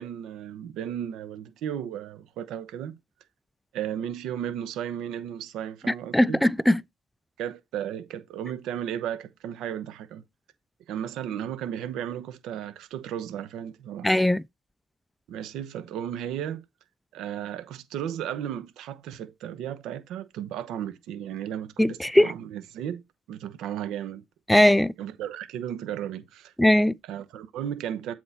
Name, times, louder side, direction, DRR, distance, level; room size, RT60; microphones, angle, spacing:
voice 1, 0.0-3.0 3.7-6.4 7.4-10.2 10.9-14.1 15.3-16.6 17.1-23.0 23.3-24.2 24.5-26.5 27.0-28.1, right 10 dB, 70° right, 0.9 m, -34 dB
voice 2, 6.1-6.8 14.0-14.4 21.8-22.3 24.5-24.9 26.6-26.9, left 1 dB, 5° left, 0.3 m, -19 dB
7.7 x 4.5 x 4.4 m
hypercardioid pair, 70°, 0 cm